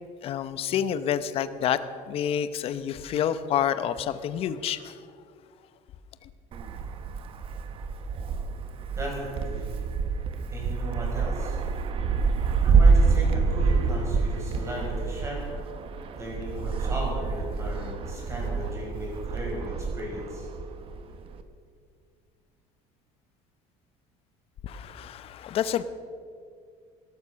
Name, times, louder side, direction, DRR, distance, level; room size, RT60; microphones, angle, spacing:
voice 1, 0.2-1.8 2.1-5.0 24.6-25.8, left 9 dB, 40° left, 13 dB, 0.8 m, -28 dB
Wind, 6.5-21.4, right 5 dB, 40° right, 1.0 m, -27 dB
voice 2, 9.0-9.8 10.5-11.6 12.6-15.4 16.2-20.5, equal, 20° right, -2 dB, 5.5 m, -36 dB
17.0 x 12.5 x 6.3 m, 2.2 s
cardioid pair, 160°, 15 cm